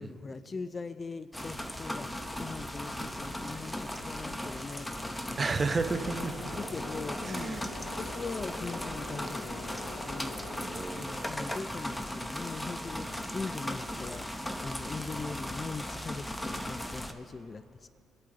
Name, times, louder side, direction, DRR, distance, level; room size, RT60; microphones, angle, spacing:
voice 1, 0.0-5.6 6.6-10.7 10.9-17.9, left 4 dB, 30° left, 13 dB, 0.3 m, -41 dB
sound 1, 1.3-17.1, left 1 dB, 10° left, 0.8 m, -37 dB
sound 2, 1.4-8.6, left 4 dB, 70° left, 1.0 m, -55 dB
voice 2, 5.4-6.5 7.2-7.8 10.6-11.5, right 4 dB, 30° right, 8 dB, 0.8 m, -32 dB
sound 3, 5.6-10.6, left 2 dB, 50° left, 1.9 m, -44 dB
23.5 x 8.6 x 3.8 m, 2.6 s
cardioid pair, 90°, 0 cm